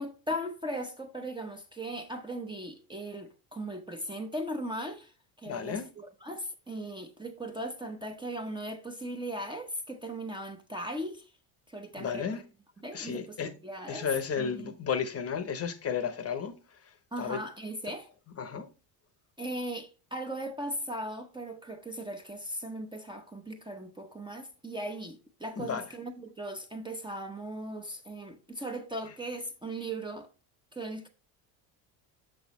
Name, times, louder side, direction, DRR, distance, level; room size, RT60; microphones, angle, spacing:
voice 1, 0.0-5.1 5.4-11.3 11.7-12.4 12.8-14.1 14.4-14.7 17.1-18.1 19.4-30.3 30.7-31.1, right 1 dB, 10° right, 0.7 m, -38 dB
voice 2, 5.5-5.8 12.0-12.4 12.9-13.5 13.9-16.5 17.2-17.4 18.4-18.7 25.6-25.8, left 7 dB, 35° left, 0.8 m, -33 dB
6.3 x 6.1 x 3.0 m
cardioid pair, 120°, 44 cm